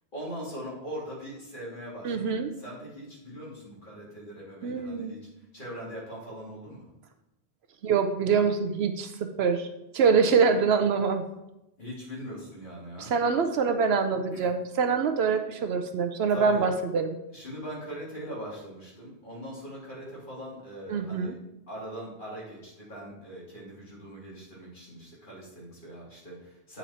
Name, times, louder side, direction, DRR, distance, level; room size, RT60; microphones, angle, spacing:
voice 1, 0.1-5.2 5.5-6.8 11.8-13.2 14.3-14.5 16.3-16.7 17.3-21.4 21.7-26.8, equal, 45° left, -6 dB, 2.6 m, -41 dB
voice 2, 2.0-2.5 4.6-5.1 7.8-9.1 9.4-9.7 9.9-11.2 13.0-17.2 20.9-21.3, right 5 dB, 70° right, 7 dB, 0.8 m, -25 dB
8.5 x 4.0 x 4.2 m, 0.90 s
omnidirectional pair, 1.1 m